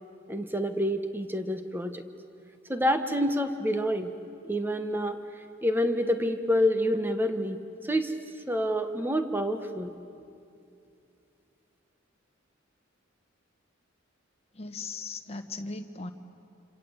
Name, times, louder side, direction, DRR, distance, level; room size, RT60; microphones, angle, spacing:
voice 1, 0.3-2.0 2.7-4.1 4.4-5.2 5.6-7.6 7.9-8.1 8.5-9.9, equal, 10° right, 8 dB, 1.3 m, -27 dB
voice 2, 14.5-16.1, left 3 dB, 30° left, 5 dB, 1.3 m, -38 dB
27.5 x 26.5 x 8.1 m, 2.5 s
head